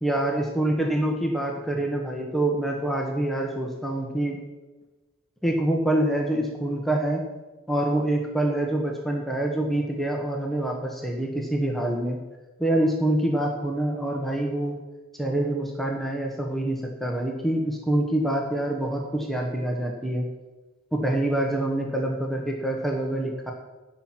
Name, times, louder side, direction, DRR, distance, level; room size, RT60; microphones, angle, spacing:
voice 1, 0.0-4.4 5.4-7.2 7.7-12.2 12.6-14.8 15.2-20.3 20.9-23.5, right 1 dB, ahead, 0 dB, 1.3 m, -26 dB
11.5 x 6.2 x 9.3 m, 1.2 s
head